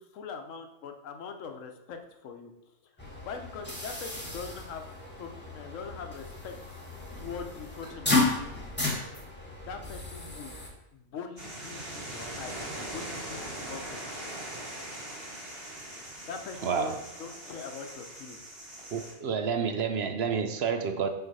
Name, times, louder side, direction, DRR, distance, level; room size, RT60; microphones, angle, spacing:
voice 1, 0.0-2.5 3.2-4.8 5.2-6.5 7.2-8.2 9.6-10.6 10.9-14.1 16.3-18.4, left 5 dB, 70° left, 6 dB, 1.1 m, -42 dB
sound 1, 3.0-10.7, left 3 dB, 10° left, 1.3 m, -33 dB
sound 2, 11.4-19.1, right 1 dB, 20° right, 2.0 m, -41 dB
voice 2, 16.6-17.0 18.9-21.1, right 6 dB, 60° right, 7 dB, 0.8 m, -29 dB
5.8 x 4.9 x 5.4 m, 0.91 s
omnidirectional pair, 1.4 m